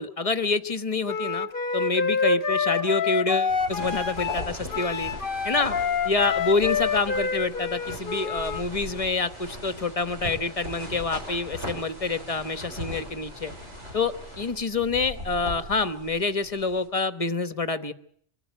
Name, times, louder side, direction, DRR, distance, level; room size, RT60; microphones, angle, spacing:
voice 1, 0.0-1.5 1.7-5.1 5.4-5.8 6.0-13.5 13.9-17.9, left 3 dB, 30° left, 11 dB, 1.1 m, -27 dB
Wind instrument woodwind instrument, 1.1-8.6, left 5 dB, 50° left, 1.2 m, -27 dB
sound 1, 3.5-16.9, equal, 85° right, 6.4 m, -39 dB
24.5 x 13.5 x 9.4 m, 0.63 s
omnidirectional pair, 1.2 m